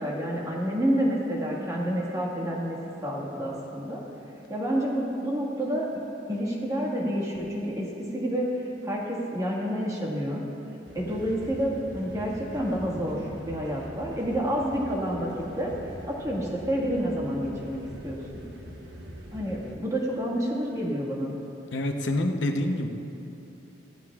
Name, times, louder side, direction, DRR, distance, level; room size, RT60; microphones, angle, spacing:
voice 1, 0.0-2.8 3.0-4.0 4.5-6.0 6.3-7.9 8.1-10.4 10.9-15.3 15.6-15.7 16.0-18.2 19.3-21.3, equal, 20° right, -4 dB, 1.7 m, -29 dB
sound 1, 10.9-19.8, right 1 dB, 65° right, 1.1 m, -43 dB
voice 2, 21.7-22.9, left 1 dB, 70° left, 4 dB, 0.9 m, -26 dB
16.0 x 13.5 x 2.4 m, 2.9 s
head